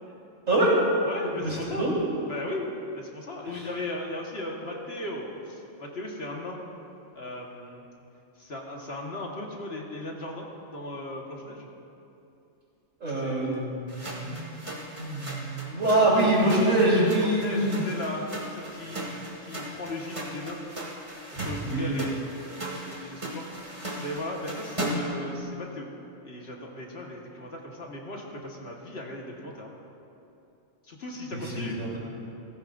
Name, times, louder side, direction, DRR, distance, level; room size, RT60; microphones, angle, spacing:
voice 1, 0.7-1.9 2.3-2.7 2.9-6.6 7.1-7.8 8.4-10.5 10.7-11.7 13.1-13.7 15.8-16.9 17.2-20.6 21.3-22.5 22.8-25.9 26.2-29.7 30.8-31.8, left 1 dB, 55° left, -1 dB, 1.7 m, -37 dB
voice 2, 1.4-2.0 13.0-14.6 15.0-17.8 21.4-22.0 31.3-32.1, right 1 dB, 85° right, -6 dB, 3.9 m, -25 dB
sound 1, 13.9-25.2, right 1 dB, 25° right, 1.9 m, -37 dB
18.0 x 15.5 x 2.6 m, 2.7 s
omnidirectional pair, 1.3 m